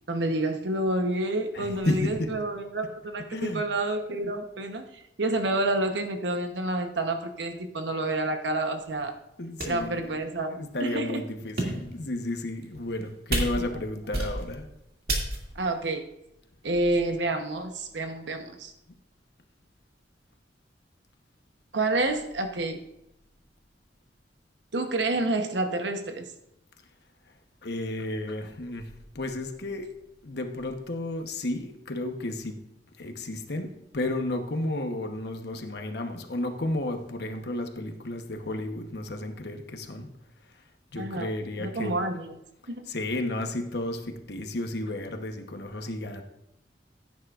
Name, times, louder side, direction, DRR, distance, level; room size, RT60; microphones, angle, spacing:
voice 1, 0.1-9.1 9.7-11.2 13.6-13.7 15.5-16.0 16.6-18.7 21.7-22.8 24.7-26.3 41.0-41.3 41.6-42.4 42.7-42.8, right 2 dB, 80° right, 6 dB, 1.0 m, -29 dB
voice 2, 1.5-2.3 3.3-3.6 4.1-4.4 9.4-10.1 10.5-14.7 27.6-29.9 30.2-32.6 33.0-40.1 40.9-42.0 42.9-46.2, left 1 dB, 65° left, 5 dB, 1.1 m, -32 dB
sound 1, 8.9-9.0 9.6-9.9 10.6-10.7 11.4-12.0 12.6-13.0 13.3-13.8 14.1-14.6 15.1-15.6, right 1 dB, 55° right, 2.4 m, -30 dB
16.0 x 9.5 x 2.5 m, 0.85 s
head